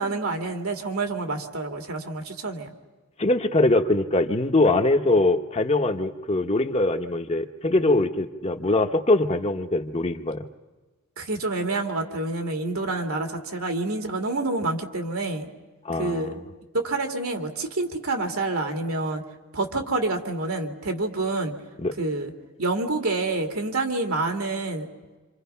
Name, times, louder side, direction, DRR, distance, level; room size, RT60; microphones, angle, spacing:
voice 1, 0.0-2.7 11.2-15.5 16.0-16.4 16.7-19.2 19.5-21.5 22.0-22.3 22.6-24.9, right 2 dB, 75° right, 4 dB, 2.7 m, -27 dB
voice 2, 3.2-10.5 15.8-16.4 21.8-21.9, left 2 dB, 30° left, 6 dB, 1.0 m, -22 dB
27.5 x 27.0 x 5.7 m, 1.2 s
head